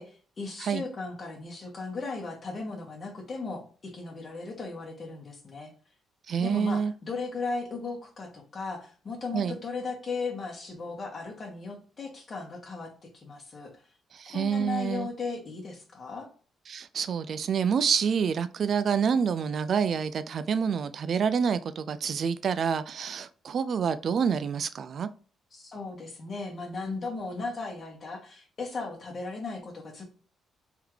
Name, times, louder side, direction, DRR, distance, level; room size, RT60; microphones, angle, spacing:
voice 1, 0.0-5.7 6.4-13.7 14.3-16.3 25.5-30.0, left 4 dB, 40° left, 0 dB, 1.6 m, -36 dB
voice 2, 6.3-6.9 9.3-9.6 14.1-15.1 16.7-25.1, right 6 dB, 55° right, 13 dB, 0.3 m, -27 dB
3.6 x 3.4 x 3.1 m, 0.39 s
cardioid pair, 90°, 0 cm